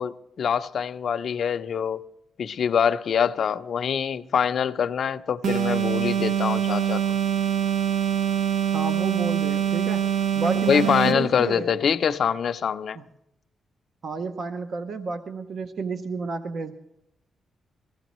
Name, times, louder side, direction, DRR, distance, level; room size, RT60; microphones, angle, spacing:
voice 1, 0.0-2.0 2.4-7.2 10.7-13.0, left 7 dB, 55° left, 0.6 m, -24 dB
sound 1, 5.4-11.3, right 9 dB, 85° right, 1.0 m, -24 dB
voice 2, 8.7-10.1 10.3-11.7 12.9-13.0 14.0-16.7, right 4 dB, 50° right, 0.7 m, -31 dB
21.5 x 15.0 x 3.0 m
wide cardioid pair, 145°, 0 cm